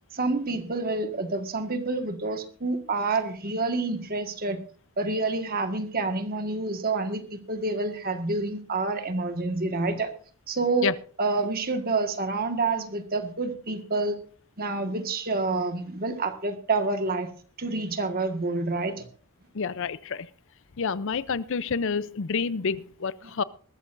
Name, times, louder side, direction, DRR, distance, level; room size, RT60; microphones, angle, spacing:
voice 1, 0.1-4.6 5.0-10.1 10.5-10.9 11.2-14.2 14.6-17.3 17.6-19.1 23.2-23.3, right 3 dB, 40° right, 1.7 m, -28 dB
voice 2, 19.6-20.3 20.8-23.4, left 5 dB, 60° left, 0.5 m, -28 dB
21.5 x 13.5 x 2.6 m
head